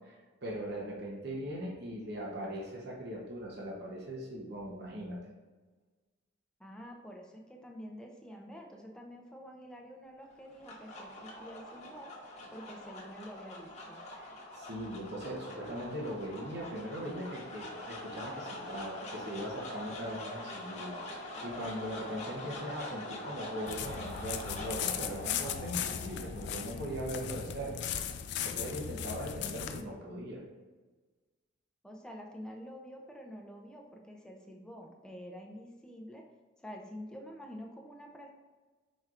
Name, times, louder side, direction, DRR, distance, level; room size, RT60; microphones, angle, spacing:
voice 1, 0.0-5.2 14.2-14.3 14.5-28.0 28.4-30.4, equal, 55° right, -3 dB, 0.9 m, -40 dB
voice 2, 6.6-12.1 12.5-14.0 31.8-36.2 36.6-38.3, equal, 5° left, 0 dB, 0.5 m, -48 dB
sound 1, 10.3-28.6, left 1 dB, 35° left, 0.9 m, -45 dB
sound 2, 23.7-29.8, left 8 dB, 60° left, 0.3 m, -37 dB
4.5 x 4.2 x 2.5 m, 1.3 s
head